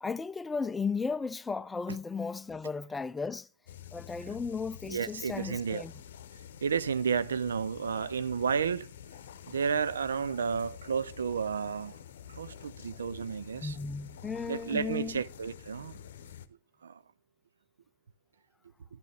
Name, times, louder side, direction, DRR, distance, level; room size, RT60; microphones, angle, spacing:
voice 1, 0.0-3.5 3.9-5.9 13.6-15.2, left 5 dB, 15° left, 0.4 m, -35 dB
sound 1, 3.7-16.5, left 9 dB, 75° left, 0.7 m, -48 dB
voice 2, 4.9-5.8 6.6-8.9 9.5-12.0 12.4-13.8 14.5-16.0 16.8-17.0, right 6 dB, 85° right, 0.4 m, -32 dB
11.5 x 10.5 x 3.3 m
hypercardioid pair, 100°, 0 cm